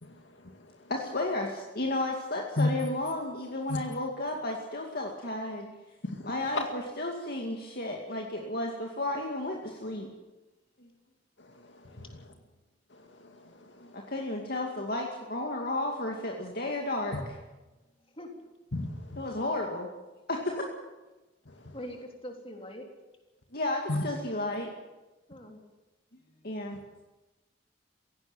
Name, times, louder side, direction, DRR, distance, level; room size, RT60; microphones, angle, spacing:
voice 1, 0.0-0.9 2.6-2.7 3.7-3.8 6.0-6.6 11.4-12.2 12.9-14.1 17.1-17.2 18.7-19.2 21.5-21.8 23.9-24.0 26.7-26.8, left 2 dB, 85° left, 5 dB, 2.2 m, -35 dB
voice 2, 0.9-5.7 6.2-10.1 10.8-10.9 13.9-17.3 19.2-19.9 20.3-20.7 23.5-24.7 26.4-26.8, left 2 dB, 55° left, 1 dB, 2.3 m, -33 dB
voice 3, 21.7-22.9 25.3-25.6, equal, 30° left, 3 dB, 3.6 m, -42 dB
17.0 x 17.0 x 9.1 m, 1.1 s
head